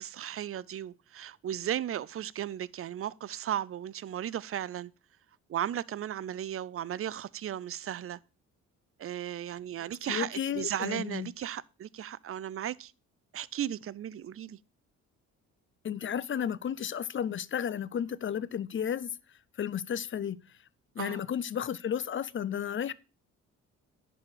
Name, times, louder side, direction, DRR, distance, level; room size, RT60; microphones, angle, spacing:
voice 1, 0.0-4.9 5.5-8.2 9.0-12.9 13.3-14.6 21.0-21.2, right 11 dB, 45° right, 0.5 m, -35 dB
voice 2, 10.0-11.3 15.8-19.1 19.6-20.4 21.0-22.9, left 8 dB, 35° left, 0.6 m, -33 dB
10.5 x 4.2 x 7.2 m
supercardioid pair, 70°, 33 cm